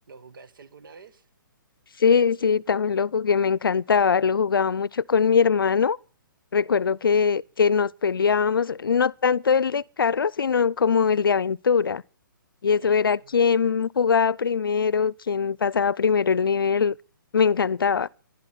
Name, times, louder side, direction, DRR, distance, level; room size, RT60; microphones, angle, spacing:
voice 1, 0.1-1.3 12.8-13.7, right 5 dB, 70° right, 1.8 m, -49 dB
voice 2, 2.0-6.0 6.5-12.0 12.6-17.0 17.3-18.1, left 6 dB, 85° left, 0.5 m, -22 dB
12.0 x 11.5 x 5.7 m
hypercardioid pair, 145°, 11 cm